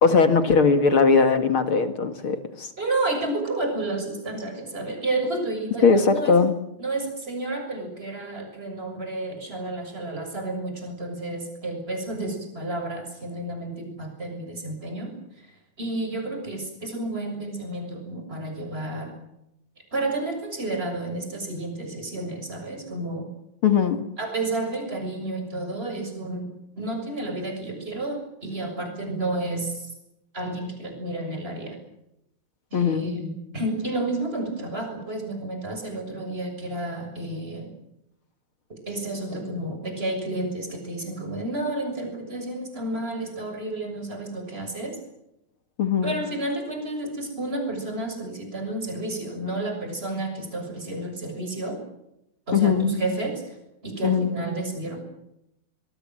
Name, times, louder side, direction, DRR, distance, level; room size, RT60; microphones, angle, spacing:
voice 1, 0.0-2.7 5.8-6.5 23.6-24.0 32.7-33.1 45.8-46.2 52.5-52.9 54.0-54.3, left 5 dB, 45° left, 8 dB, 2.0 m, -20 dB
voice 2, 2.8-6.3 6.8-15.1 15.8-19.1 19.9-23.3 23.9-29.9 30.3-31.8 32.7-37.7 38.9-45.0 46.0-51.8 52.5-53.6 53.8-55.0, right 2 dB, 15° right, 4 dB, 6.8 m, -31 dB
24.5 x 22.5 x 7.7 m, 0.84 s
omnidirectional pair, 4.1 m